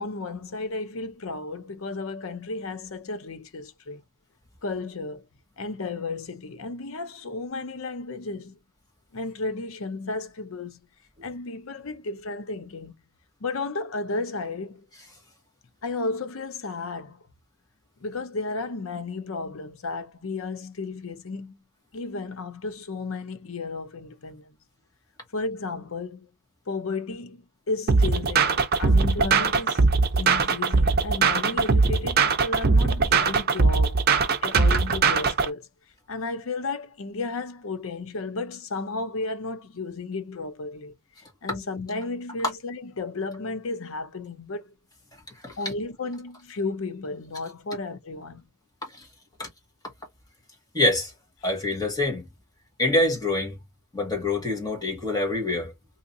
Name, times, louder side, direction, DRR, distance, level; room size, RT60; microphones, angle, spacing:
voice 1, 0.0-4.0 4.6-5.2 5.6-8.6 9.1-10.8 11.2-12.9 13.4-14.9 15.8-17.2 18.0-21.6 21.9-24.6 25.3-26.3 26.7-29.9 30.2-34.0 34.4-35.7 36.1-44.7 45.6-48.4, left 3 dB, 70° left, 0.7 m, -33 dB
sound 1, 27.9-35.5, right 4 dB, 45° right, 0.6 m, -21 dB
voice 2, 50.7-51.1 51.4-52.2 52.8-53.6 53.9-55.7, left 2 dB, 20° left, 1.6 m, -25 dB
3.7 x 2.8 x 2.6 m
head